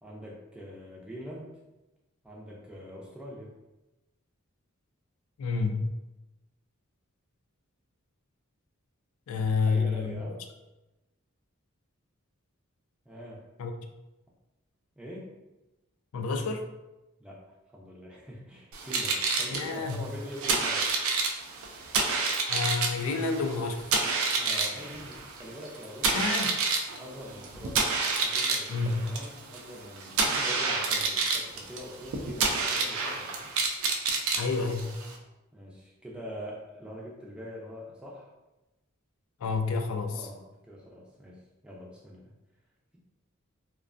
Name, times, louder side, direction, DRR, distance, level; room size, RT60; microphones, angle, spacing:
voice 1, 0.0-1.6 2.2-3.5 9.5-10.4 13.1-13.4 15.0-15.3 17.2-20.8 22.8-22.9 24.4-26.6 27.0-28.0 28.2-33.5 35.5-38.3 40.1-42.3, equal, 5° right, -4 dB, 0.4 m, -44 dB
voice 2, 5.4-5.9 9.3-10.2 13.6-13.7 16.1-16.6 19.5-20.0 22.5-23.9 26.1-26.6 28.7-29.1 34.4-34.9 39.4-40.3, left 4 dB, 80° left, 5 dB, 0.3 m, -29 dB
sound 1, 18.7-35.2, right 4 dB, 75° right, 0.4 m, -29 dB
2.4 x 2.1 x 2.4 m, 1.0 s
head